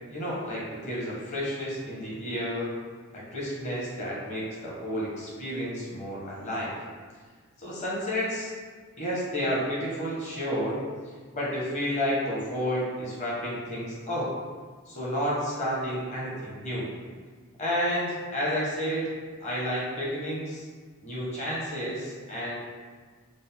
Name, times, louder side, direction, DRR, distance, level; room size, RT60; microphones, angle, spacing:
voice 1, 0.1-2.7 3.1-6.7 7.6-8.5 9.0-10.8 11.3-14.3 14.9-16.9 17.6-19.1 19.4-20.6 21.0-22.5, equal, 35° left, -6 dB, 1.2 m, -31 dB
5.1 x 2.1 x 3.5 m, 1.5 s
head